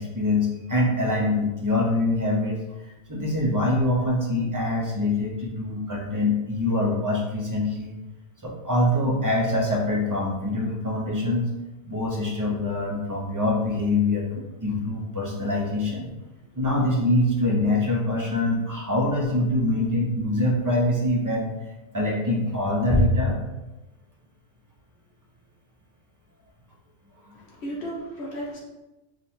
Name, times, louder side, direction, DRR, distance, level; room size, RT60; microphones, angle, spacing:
voice 1, 0.0-7.9 8.4-11.5 11.8-16.1 16.6-21.5 21.9-23.4 27.3-27.4, left 2 dB, 20° right, -2 dB, 0.6 m, -24 dB
voice 2, 27.3-28.6, right 1 dB, 65° left, -4 dB, 1.2 m, -34 dB
3.5 x 2.4 x 4.4 m, 1.0 s
omnidirectional pair, 1.2 m